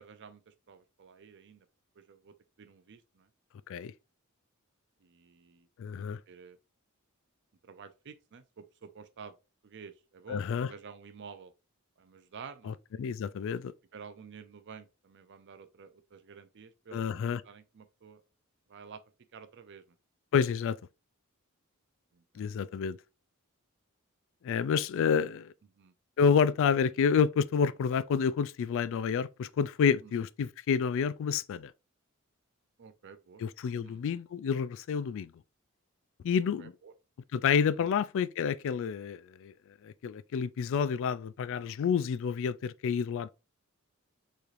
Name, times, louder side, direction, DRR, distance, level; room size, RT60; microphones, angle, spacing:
voice 1, 0.0-1.7 2.0-3.3 5.0-5.7 6.3-6.6 7.6-9.3 9.6-11.5 12.0-12.8 13.9-18.2 18.7-19.0 19.3-19.8 22.1-22.6 25.8-25.9 30.0-30.1 32.8-33.4 33.8-34.0 36.6-36.9 37.8-37.9, right 6 dB, 55° right, 0.5 m, -51 dB
voice 2, 5.8-6.2 10.3-10.7 12.7-13.7 16.9-17.4 20.3-20.8 22.4-23.0 24.4-25.5 26.2-31.7 33.4-35.3 36.2-36.7 37.3-39.5 39.8-43.3, left 6 dB, 65° left, 0.3 m, -29 dB
6.6 x 3.2 x 2.5 m
head